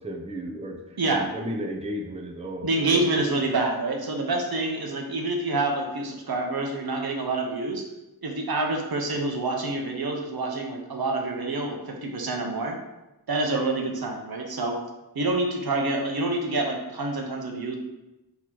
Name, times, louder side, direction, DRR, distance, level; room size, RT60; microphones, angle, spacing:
voice 1, 0.0-3.5, right 1 dB, 15° right, 1 dB, 0.6 m, -34 dB
voice 2, 1.0-1.3 2.6-7.8 8.2-12.8 13.3-14.8 15.1-17.8, right 2 dB, 70° right, 2 dB, 0.8 m, -27 dB
3.8 x 3.0 x 4.5 m, 0.99 s
wide cardioid pair, 60°, 39 cm